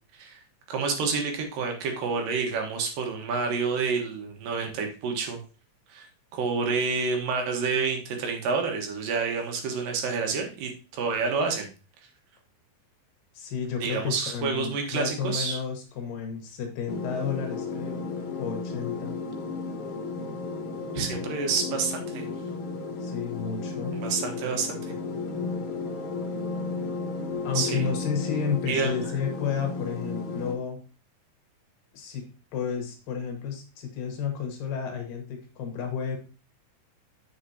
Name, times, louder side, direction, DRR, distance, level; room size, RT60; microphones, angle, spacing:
voice 1, 0.7-5.4 5.9-6.1 6.3-11.7 13.8-15.6 20.9-22.3 23.9-24.9 27.5-27.8 28.7-28.9, right 5 dB, 80° right, 3 dB, 3.0 m, -28 dB
voice 2, 13.3-18.0 18.4-19.2 23.0-24.0 27.4-30.8 31.9-32.3 32.5-36.2, left 6 dB, 80° left, 4 dB, 3.1 m, -32 dB
sound 1, 16.9-30.5, left 3 dB, 65° left, 2.4 m, -34 dB
8.3 x 6.5 x 2.8 m, 0.33 s
omnidirectional pair, 3.9 m